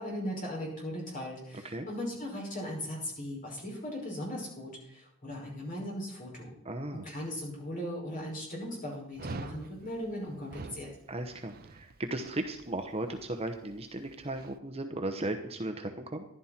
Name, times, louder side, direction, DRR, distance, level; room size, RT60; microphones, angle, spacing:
voice 1, 0.0-6.5 6.9-10.9, equal, 35° left, -2 dB, 5.8 m, -38 dB
voice 2, 6.6-7.1 11.1-16.3, right 1 dB, 25° right, 6 dB, 0.9 m, -36 dB
Dog, 9.2-14.6, right 3 dB, 45° right, 0.6 m, -46 dB
15.0 x 11.0 x 4.4 m, 0.76 s
head